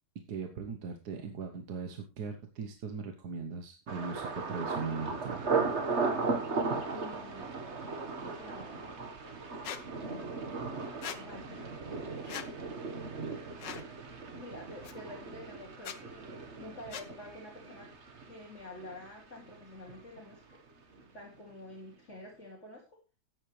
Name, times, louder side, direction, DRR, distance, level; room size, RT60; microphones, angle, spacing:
voice 1, 0.3-5.5, right 5 dB, 70° right, 6 dB, 1.6 m, -39 dB
Thunder, 3.9-19.6 19.9-20.5 20.9-21.2, right 4 dB, 45° right, 1.6 m, -37 dB
voice 2, 6.8-7.5 8.0-9.0 11.1-12.0 14.3-17.9 18.3-20.6 21.1-23.0, left 1 dB, 40° left, -3 dB, 3.3 m, -48 dB
Squeak, 9.6-9.8 11.0-11.2 12.3-12.5 13.6-13.9 14.8-14.9 15.8-16.0 16.9-17.1, left 8 dB, 85° left, 1.7 m, -40 dB
13.5 x 9.8 x 3.3 m, 0.30 s
omnidirectional pair, 1.8 m